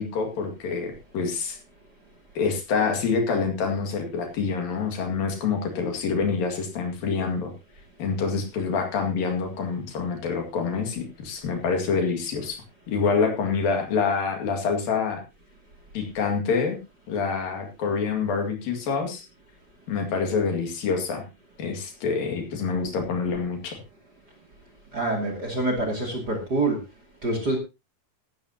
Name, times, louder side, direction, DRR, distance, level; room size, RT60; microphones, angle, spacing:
voice 1, 0.0-1.6 2.4-7.5 8.0-12.6 12.9-15.2 15.9-16.8 17.1-19.3 19.9-21.2 21.6-23.8, left 5 dB, 65° left, 4 dB, 3.8 m, -26 dB
voice 2, 24.9-26.8 27.2-27.6, right 2 dB, 30° right, 3 dB, 2.6 m, -26 dB
15.5 x 12.5 x 2.9 m, 0.28 s
omnidirectional pair, 4.4 m